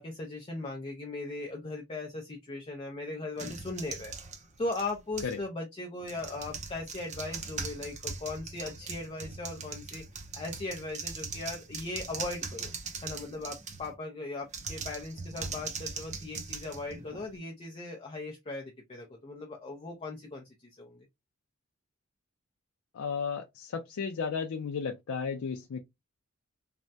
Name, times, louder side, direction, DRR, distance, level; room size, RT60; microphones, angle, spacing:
voice 1, 0.0-4.1 4.6-10.0 10.3-12.7 13.0-21.0, left 2 dB, 25° left, 0.5 m, -38 dB
sound 1, 3.4-5.4 6.0-13.9 14.5-17.4, right 4 dB, 35° right, 0.5 m, -41 dB
voice 2, 22.9-25.8, left 5 dB, 85° left, 0.4 m, -34 dB
3.3 x 2.1 x 2.6 m
head